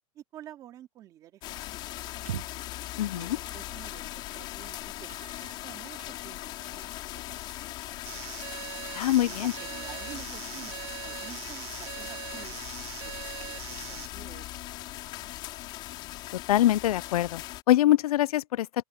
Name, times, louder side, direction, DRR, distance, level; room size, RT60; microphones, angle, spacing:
voice 1, 0.1-2.1 3.0-7.2 7.8-8.0 9.0-12.6 13.0-15.3, right 12 dB, 20° right, 2.7 m, -50 dB
sound 1, 1.4-17.6, left 16 dB, 25° left, 4.9 m, -40 dB
sound 2, 2.1-2.7 3.4-3.7 4.1-4.2 5.0-6.1 6.6-7.0 7.3-7.7 8.1-8.4 8.7-8.8 9.3-10.1, right 11 dB, 65° right, 7.8 m, -44 dB
voice 2, 3.0-3.4 8.9-9.5 16.5-17.4 17.7-18.7, left 14 dB, 70° left, 0.5 m, -23 dB
sound 3, 8.1-14.1, right 18 dB, 45° right, 4.0 m, -41 dB
open air
supercardioid pair, 180°, 20 cm